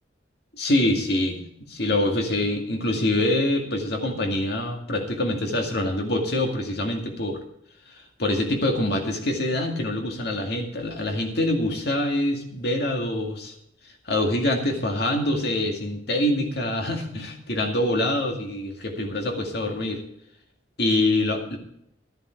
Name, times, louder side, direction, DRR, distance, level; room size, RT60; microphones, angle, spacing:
voice 1, 0.5-7.4 7.9-13.5 14.1-20.0 20.8-21.6, left 1 dB, 60° left, 3 dB, 2.1 m, -25 dB
12.5 x 10.5 x 4.6 m, 0.73 s
head